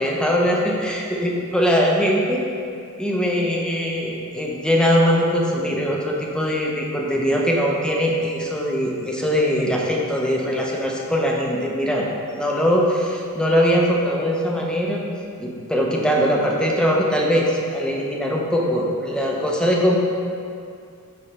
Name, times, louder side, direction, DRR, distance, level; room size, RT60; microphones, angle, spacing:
voice 1, 0.0-2.4 3.0-15.0 15.4-20.0, equal, 5° left, -2 dB, 0.6 m, -21 dB
5.9 x 3.2 x 5.1 m, 2.4 s
head